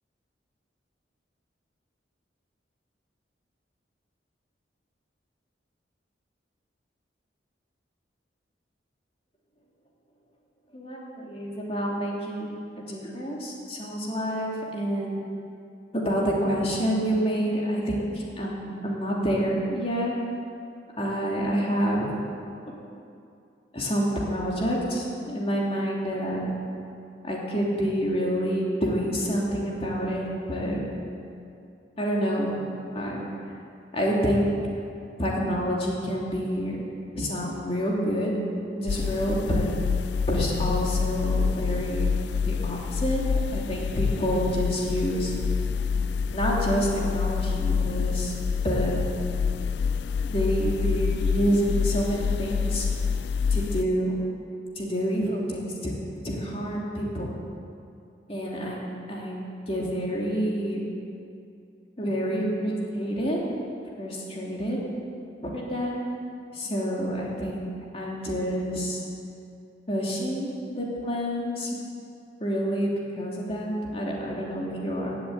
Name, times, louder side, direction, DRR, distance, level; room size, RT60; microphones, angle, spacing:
voice 1, 10.7-12.5 12.9-15.2 15.9-20.1 21.0-22.1 23.7-26.5 27.2-30.8 32.0-32.6 32.9-33.2 33.9-34.5 35.2-36.9 37.1-38.3 38.7-39.7 40.3-42.1 42.4-45.3 46.3-48.3 48.6-49.0 50.2-52.9 53.5-54.2 54.8-55.9 56.2-57.3 58.3-60.8 62.0-63.4 64.0-64.8 65.5-66.0 66.5-69.0 69.9-71.7 72.4-72.9 73.2-75.2, equal, 30° left, -3 dB, 2.8 m, -28 dB
sound 1, 38.9-53.8, left 6 dB, 65° left, 0.3 m, -27 dB
15.0 x 8.0 x 9.2 m, 2.5 s
head